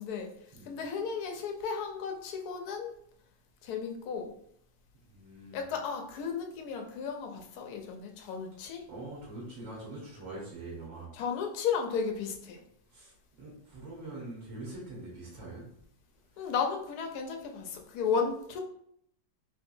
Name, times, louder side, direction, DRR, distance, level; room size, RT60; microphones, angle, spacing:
voice 1, 0.0-3.0 3.6-4.3 5.5-8.9 11.1-12.6 16.4-18.6, left 6 dB, 70° left, 3 dB, 1.0 m, -34 dB
voice 2, 5.1-5.7 8.9-11.1 12.9-13.1 13.4-15.7 16.3-16.5, right 2 dB, 45° right, -5 dB, 1.6 m, -44 dB
3.5 x 3.2 x 2.6 m, 0.69 s
omnidirectional pair, 2.1 m